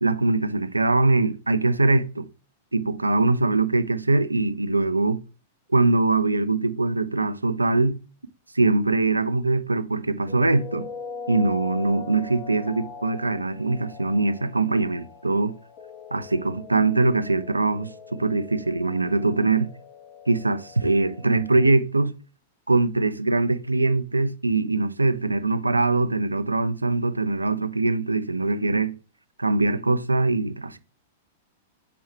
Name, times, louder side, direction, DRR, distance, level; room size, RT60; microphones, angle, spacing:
voice 1, 0.0-2.3 2.7-5.2 5.7-8.0 8.5-10.9 11.3-15.5 16.1-19.7 20.3-22.1 22.7-29.0 29.4-30.8, right 3 dB, 85° right, 0.5 m, -22 dB
sound 1, 10.3-21.7, left 5 dB, 45° left, 1.5 m, -41 dB
5.9 x 4.7 x 4.3 m
figure-of-eight pair, 100°, 0 cm